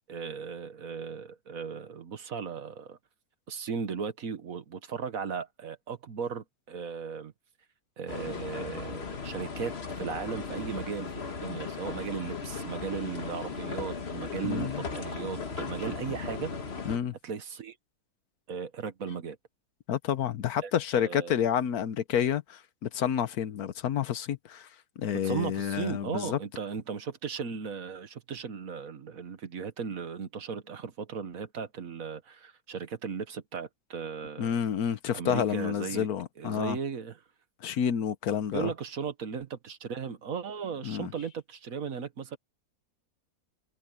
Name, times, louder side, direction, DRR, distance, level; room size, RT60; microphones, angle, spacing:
voice 1, 0.1-3.0 3.5-7.3 8.0-9.7 10.0-16.5 17.2-17.8 18.5-19.4 20.6-21.3 25.2-34.6 35.1-36.1 36.4-37.2 38.5-42.4, right 6 dB, 60° right, 1.7 m, -36 dB
sound 1, 8.1-17.0, left 4 dB, 40° left, 1.7 m, -37 dB
voice 2, 14.4-14.8 16.8-17.1 19.9-24.7 25.0-26.4 34.4-36.8 37.6-38.7 40.8-41.1, left 9 dB, 70° left, 1.3 m, -29 dB
omnidirectional pair, 1.7 m